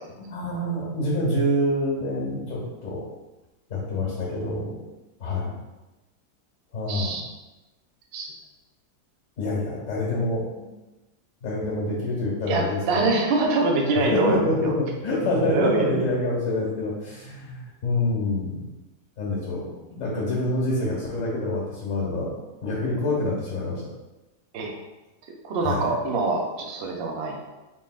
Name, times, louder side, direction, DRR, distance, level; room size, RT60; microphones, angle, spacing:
voice 1, 0.2-3.1 3.7-4.8 5.2-5.6 6.7-7.2 9.4-10.7 11.4-12.8 14.1-18.6 19.2-22.3 22.6-23.9 25.6-25.9, left 1 dB, 55° left, -5 dB, 1.8 m, -26 dB
voice 2, 6.9-7.2 8.1-8.3 12.5-14.4 15.5-15.9 24.5-24.8 25.4-27.4, right 3 dB, 60° right, 1 dB, 0.7 m, -24 dB
4.4 x 3.6 x 2.4 m, 1.1 s
omnidirectional pair, 1.7 m